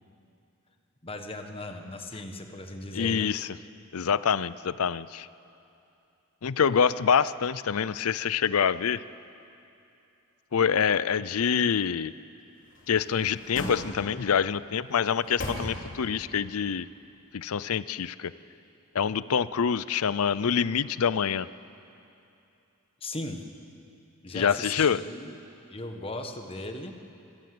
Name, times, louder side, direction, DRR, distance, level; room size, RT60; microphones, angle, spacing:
voice 1, 1.0-3.3 23.0-23.4 24.2-25.4 25.7-26.9, left 2 dB, 25° left, 5 dB, 1.5 m, -37 dB
voice 2, 2.9-3.5 3.9-5.3 6.4-9.0 10.5-12.1 12.9-16.9 17.3-18.3 18.9-21.5 24.3-25.0, left 7 dB, 75° left, 17 dB, 0.5 m, -26 dB
sound 1, 12.7-14.4 14.9-16.2 16.6-16.7, left 1 dB, 60° left, 3.7 m, -38 dB
26.0 x 16.0 x 7.9 m, 2.7 s
head